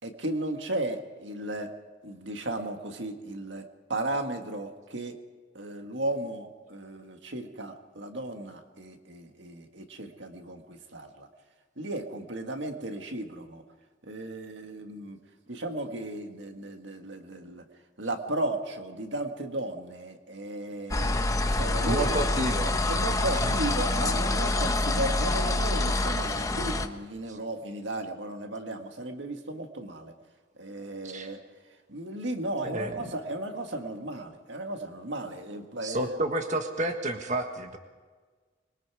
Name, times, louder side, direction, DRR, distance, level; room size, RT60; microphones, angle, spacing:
voice 1, 0.0-1.7 2.0-5.2 5.5-11.3 11.8-13.6 14.1-15.2 15.5-17.6 18.0-22.2 22.9-30.1 30.6-31.4 31.9-36.1, right 1 dB, 70° right, 5 dB, 1.9 m, -35 dB
sound 1, 20.9-26.9, left 2 dB, 20° left, 1.0 m, -26 dB
voice 2, 21.8-22.8 23.4-23.6 27.3-27.4 31.0-31.3 32.6-33.1 35.8-37.8, right 1 dB, 40° right, 5 dB, 1.5 m, -31 dB
26.0 x 23.0 x 4.9 m, 1.4 s
head